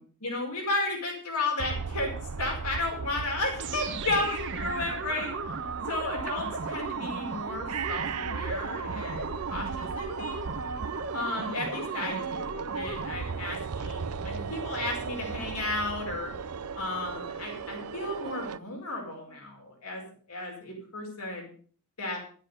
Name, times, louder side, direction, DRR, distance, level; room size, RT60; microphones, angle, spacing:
voice 1, 0.2-2.1 2.4-5.3 5.9-10.4 11.1-16.3 16.7-20.0 20.3-21.5 22.0-22.2, left 2 dB, 80° left, 1 dB, 5.4 m, -33 dB
sound 1, 1.6-18.6, right 5 dB, 80° right, 0.7 m, -37 dB
sound 2, 3.6-13.4, right 4 dB, 55° right, 1.4 m, -36 dB
12.0 x 10.5 x 6.7 m, 0.43 s
head